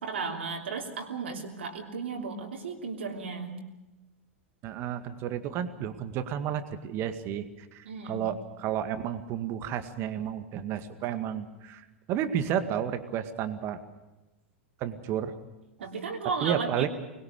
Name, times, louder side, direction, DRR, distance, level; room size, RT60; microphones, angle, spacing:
voice 1, 0.0-3.6 7.9-8.3 15.8-16.9, right 5 dB, 65° right, 2 dB, 3.1 m, -34 dB
voice 2, 4.6-13.8 14.8-15.4 16.4-16.9, right 9 dB, 40° right, 10 dB, 2.0 m, -32 dB
25.0 x 21.0 x 6.7 m, 1.1 s
figure-of-eight pair, 95°, 7 cm